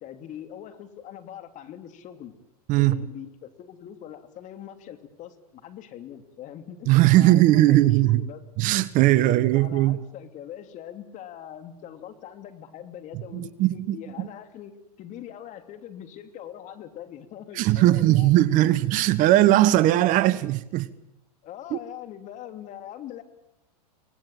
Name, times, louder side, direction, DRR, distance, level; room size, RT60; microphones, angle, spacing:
voice 1, 0.0-2.3 2.8-8.4 9.1-18.3 18.6-19.1 19.3-19.5 21.4-23.2, left 10 dB, 40° left, 2.9 m, -42 dB
voice 2, 2.7-3.0 6.9-8.2 8.6-10.0 13.3-14.3 17.6-20.9 21.7-21.8, right 15 dB, 40° right, 1.1 m, -19 dB
24.5 x 19.5 x 9.2 m
hypercardioid pair, 120°, 20 cm